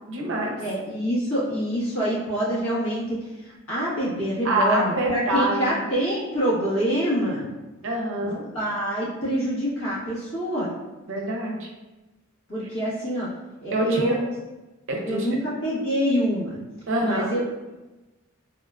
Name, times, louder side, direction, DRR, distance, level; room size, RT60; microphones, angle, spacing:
voice 1, 0.1-0.5 4.4-5.9 7.8-8.4 11.1-11.7 13.7-14.2 14.9-15.3 16.9-17.3, right 1 dB, 60° right, 0 dB, 0.5 m, -25 dB
voice 2, 0.6-3.2 3.4-7.5 8.2-10.7 12.5-13.3 13.6-14.2 15.0-16.6 17.0-17.7, equal, 70° left, -8 dB, 1.2 m, -26 dB
3.6 x 2.3 x 2.3 m, 1.1 s
head